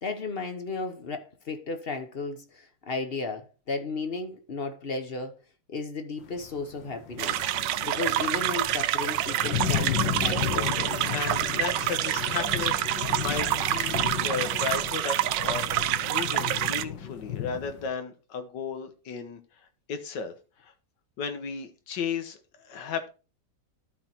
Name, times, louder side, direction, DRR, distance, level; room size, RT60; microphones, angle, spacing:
voice 1, 0.0-5.3 5.7-7.5 7.8-11.1, left 3 dB, 40° left, 1.0 m, -34 dB
sound 1, 6.2-17.9, left 9 dB, 90° left, 1.7 m, -34 dB
sound 2, 7.2-16.8, right 13 dB, 75° right, 1.2 m, -27 dB
voice 2, 11.1-19.4 19.9-20.3 20.6-20.7 21.2-23.1, left 6 dB, 70° left, 1.8 m, -34 dB
12.0 x 4.5 x 4.4 m
omnidirectional pair, 2.0 m